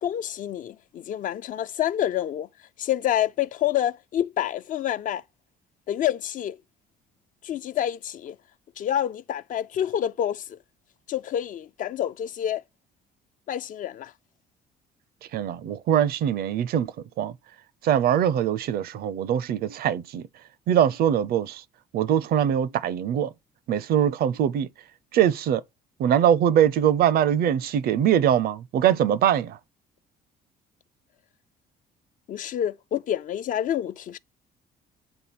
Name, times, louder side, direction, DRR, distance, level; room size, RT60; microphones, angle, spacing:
voice 1, 0.0-2.5 2.8-5.2 5.9-6.6 7.4-8.4 8.8-10.6 11.1-12.6 13.5-14.1 32.3-34.2, left 11 dB, 50° left, 0.5 m, -28 dB
voice 2, 15.3-17.3 17.8-20.2 20.7-21.6 21.9-23.3 23.7-24.7 25.1-25.6 26.0-29.6, right 10 dB, 65° right, 0.6 m, -22 dB
8.8 x 3.8 x 4.1 m
cardioid pair, 110°, 17 cm